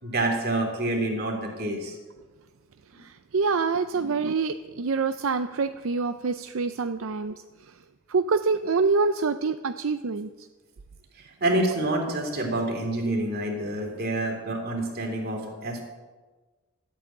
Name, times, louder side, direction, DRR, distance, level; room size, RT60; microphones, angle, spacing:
voice 1, 0.0-2.0 3.9-4.1 11.2-15.8, right 1 dB, 45° right, 2 dB, 3.0 m, -28 dB
voice 2, 3.0-7.4 8.1-10.3, right 4 dB, 70° right, 10 dB, 0.5 m, -26 dB
13.5 x 9.1 x 8.6 m, 1.3 s
head